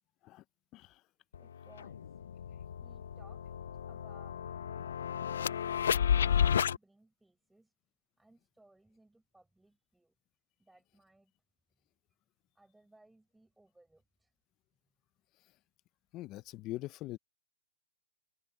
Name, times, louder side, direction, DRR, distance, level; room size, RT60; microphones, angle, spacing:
sound 1, 1.3-1.4 1.8-6.8, left 8 dB, 80° left, 0.4 m, -32 dB
voice 1, 1.3-2.2 2.8-3.4 3.9-4.4 5.1-7.7 8.2-10.2 10.6-11.3 12.5-14.3, right 2 dB, 5° right, 7.4 m, -63 dB
voice 2, 16.1-17.2, left 17 dB, 25° left, 0.5 m, -42 dB
open air
hypercardioid pair, 160°, 0 cm